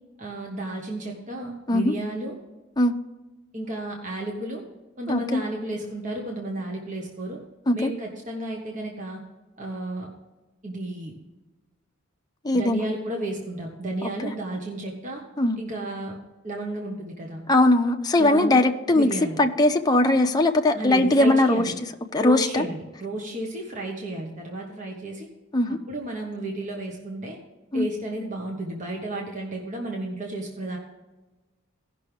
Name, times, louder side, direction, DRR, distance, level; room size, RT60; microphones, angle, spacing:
voice 1, 0.2-2.3 3.5-4.6 5.0-7.4 7.7-9.2 9.6-10.1 10.6-11.1 12.5-15.2 15.6-16.2 16.4-17.4 18.2-18.7 18.9-19.4 20.7-21.8 22.2-25.3 25.9-27.4 27.7-30.8, right 1 dB, 40° right, 0 dB, 1.3 m, -32 dB
voice 2, 5.1-5.4 7.7-7.9 12.4-12.8 15.4-15.6 17.5-19.1 19.4-21.6 22.1-22.6 25.5-25.8 27.7-27.9, left 1 dB, 20° left, 3 dB, 0.7 m, -20 dB
17.0 x 6.0 x 3.4 m, 1.1 s
head